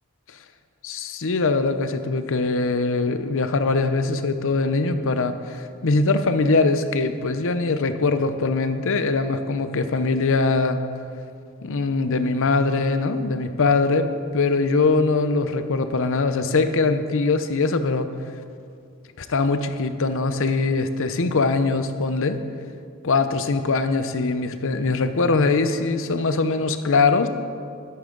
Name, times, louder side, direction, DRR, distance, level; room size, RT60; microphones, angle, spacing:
voice 1, 0.8-10.8 11.6-18.1 19.2-22.4 23.0-27.3, left 3 dB, 65° left, 10 dB, 0.7 m, -22 dB
12.5 x 11.0 x 3.9 m, 2.3 s
head